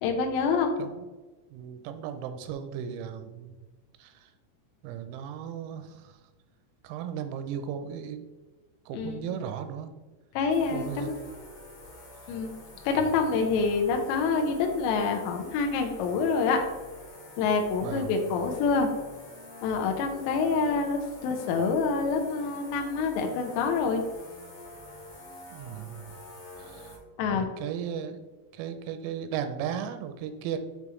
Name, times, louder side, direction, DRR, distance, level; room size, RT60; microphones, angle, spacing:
voice 1, 0.0-0.7 8.9-9.3 10.3-11.2 12.3-12.5 12.8-16.6 17.4-18.9 19.6-24.0 27.2-27.5, left 4 dB, 85° left, 4 dB, 2.6 m, -26 dB
voice 2, 1.5-3.6 4.0-4.3 4.8-6.2 6.8-8.3 8.9-9.9 10.7-11.1 17.8-18.1 25.5-26.1 26.6-27.0 27.3-28.2 28.5-30.6, right 8 dB, 85° right, 9 dB, 3.3 m, -36 dB
sound 1, 10.5-27.0, left 1 dB, 55° left, 1.9 m, -47 dB
8.9 x 3.5 x 3.0 m, 1.2 s
omnidirectional pair, 6.0 m